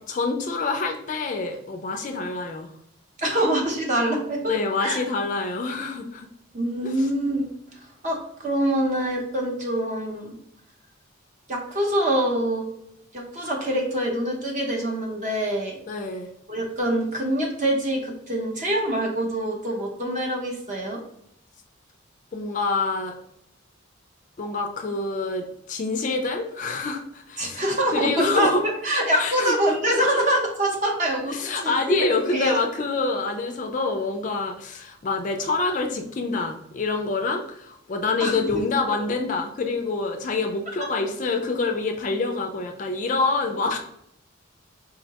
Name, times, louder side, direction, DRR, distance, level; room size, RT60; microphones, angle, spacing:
voice 1, 0.1-2.7 4.5-6.3 6.8-7.1 15.9-16.3 22.3-23.2 24.4-27.6 27.9-28.6 29.2-29.5 31.3-43.8, left 3 dB, 40° left, 4 dB, 0.3 m, -26 dB
voice 2, 3.2-4.5 4.8-5.0 6.5-7.5 8.0-10.3 11.5-12.7 13.1-15.8 16.5-21.0 27.4-32.0 32.3-32.7 38.2-38.6, right 1 dB, 35° right, 0 dB, 0.7 m, -25 dB
3.7 x 2.1 x 2.8 m, 0.73 s
head